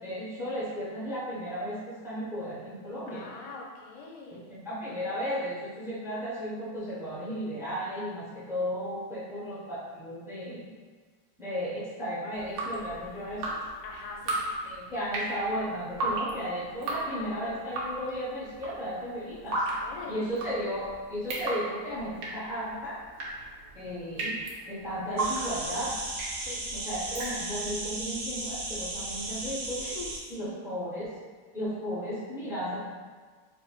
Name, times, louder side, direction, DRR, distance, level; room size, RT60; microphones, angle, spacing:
voice 1, 0.0-3.3 4.3-10.7 11.4-13.5 14.6-19.7 20.1-23.0 23.7-24.4 24.6-26.0 26.7-29.8 30.3-31.1 31.5-32.8, equal, 5° right, -9 dB, 0.3 m, -34 dB
voice 2, 3.1-4.5 13.8-14.4 16.8-17.6 19.8-20.4 26.5-26.6 29.2-29.4 29.8-30.5, left 3 dB, 65° left, 0 dB, 0.9 m, -43 dB
Drip, 12.3-27.8, right 2 dB, 65° right, 1.0 m, -35 dB
sound 1, 25.2-30.2, right 2 dB, 85° right, 0.5 m, -36 dB
4.0 x 3.2 x 2.3 m, 1.5 s
omnidirectional pair, 1.9 m